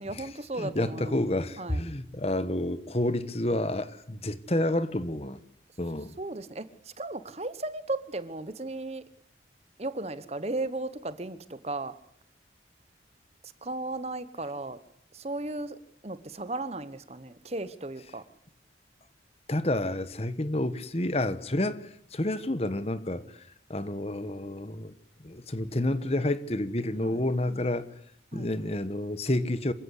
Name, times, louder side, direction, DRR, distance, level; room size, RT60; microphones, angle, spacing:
voice 1, 0.0-1.2 1.6-1.8 6.2-9.0 9.8-12.0 13.4-14.8 15.1-15.8 16.0-18.2 27.0-27.6 28.3-28.8, right 2 dB, 35° right, 1.1 m, -36 dB
voice 2, 0.6-5.4 5.8-6.2 19.5-23.4 23.7-24.9 25.2-27.9 28.3-29.7, left 1 dB, 35° left, 1.3 m, -29 dB
26.5 x 16.5 x 8.2 m
head